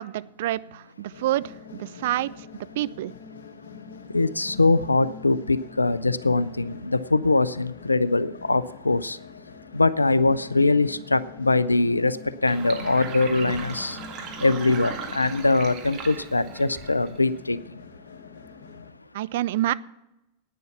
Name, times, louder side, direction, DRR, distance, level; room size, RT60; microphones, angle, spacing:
voice 1, 0.0-2.3 2.8-3.1 19.1-19.7, right 14 dB, 55° right, 0.4 m, -27 dB
sound 1, 1.1-18.9, left 5 dB, 60° left, 1.1 m, -45 dB
voice 2, 4.1-9.2 9.7-14.0 14.4-17.9 18.7-18.8, left 3 dB, 80° left, 0.4 m, -22 dB
Sink (filling or washing), 12.5-17.4, right 6 dB, 35° right, 1.8 m, -38 dB
10.5 x 9.2 x 7.0 m
figure-of-eight pair, 90°, 0 cm